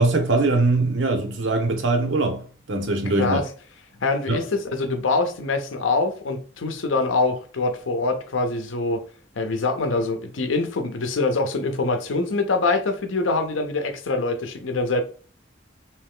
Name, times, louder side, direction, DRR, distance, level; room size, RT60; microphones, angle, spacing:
voice 1, 0.0-2.4 2.7-3.4 4.3-4.4, right 2 dB, 75° right, 0.9 m, -21 dB
voice 2, 3.0-3.5 4.0-9.0 9.4-15.0, left 3 dB, 90° left, 0.6 m, -24 dB
3.2 x 3.0 x 3.5 m
head